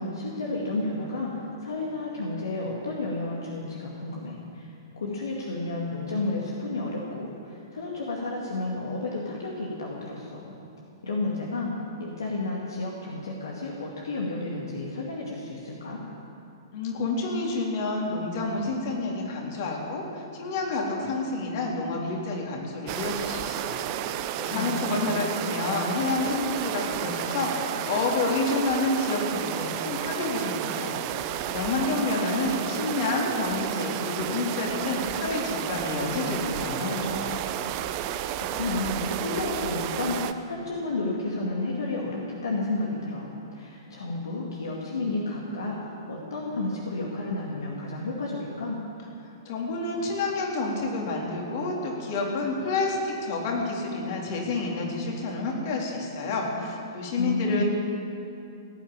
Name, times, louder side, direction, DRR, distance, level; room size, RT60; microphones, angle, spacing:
voice 1, 0.0-10.5 11.0-11.7 12.0-16.0 24.5-25.4 38.3-48.8 57.2-57.6, left 2 dB, 70° left, -3 dB, 2.3 m, -31 dB
voice 2, 16.7-37.4 49.2-57.6, left 3 dB, 50° left, -1 dB, 3.7 m, -29 dB
sound 1, 22.9-40.3, right 11 dB, 40° right, 0.7 m, -32 dB
17.5 x 9.1 x 9.0 m, 2.6 s
figure-of-eight pair, 110°, 2 cm